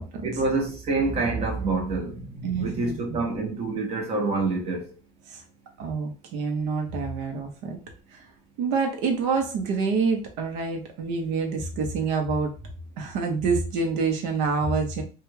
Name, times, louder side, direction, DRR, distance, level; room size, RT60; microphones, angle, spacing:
voice 1, 0.2-4.9, right 3 dB, 30° right, 0.9 m, -27 dB
voice 2, 2.4-3.2 5.3-5.4 5.8-7.8 8.1-8.2 8.6-12.5 13.0-15.0, right 4 dB, 65° right, 0.8 m, -27 dB
3.2 x 2.3 x 3.1 m
cardioid pair, 170°, 20 cm